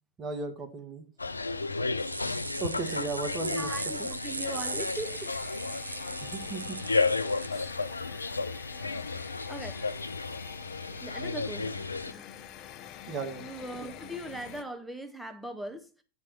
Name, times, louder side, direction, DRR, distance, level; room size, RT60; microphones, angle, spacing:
voice 1, 0.2-1.1 2.6-3.7 6.2-6.8 7.5-7.7 13.1-13.4, right 4 dB, 25° right, 1.7 m, -36 dB
sound 1, 1.2-12.1, left 3 dB, 80° left, 0.4 m, -33 dB
sound 2, 2.0-7.5, right 4 dB, 80° right, 0.5 m, -39 dB
sound 3, 3.4-14.6, left 10 dB, 35° left, 0.7 m, -48 dB
voice 2, 3.4-5.4 9.0-9.1 9.5-9.8 11.0-12.4 13.4-16.0, right 1 dB, ahead, 1.1 m, -40 dB
8.6 x 4.7 x 5.9 m
figure-of-eight pair, 90°, 0 cm